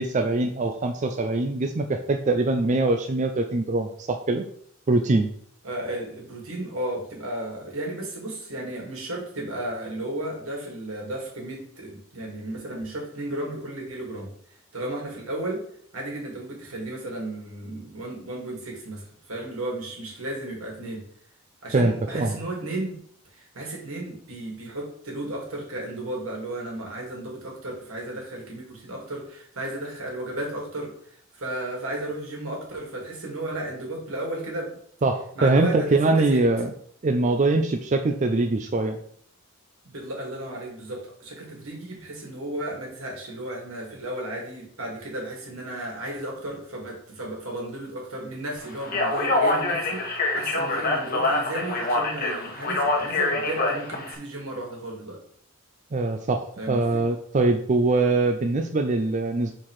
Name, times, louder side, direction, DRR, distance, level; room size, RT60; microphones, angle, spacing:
voice 1, 0.0-4.5 4.9-5.3 21.7-22.3 35.0-36.7 37.0-39.0 55.9-59.5, right 2 dB, 35° right, 6 dB, 0.4 m, -23 dB
voice 2, 5.6-14.3 14.7-15.6 15.9-21.0 21.6-23.0 23.3-34.7 35.3-36.4 39.8-55.2 56.6-57.0, right 1 dB, 80° right, -1 dB, 2.4 m, -34 dB
Speech, 48.8-54.1, left 2 dB, 45° left, 1.2 m, -25 dB
5.7 x 4.5 x 4.8 m, 0.63 s
head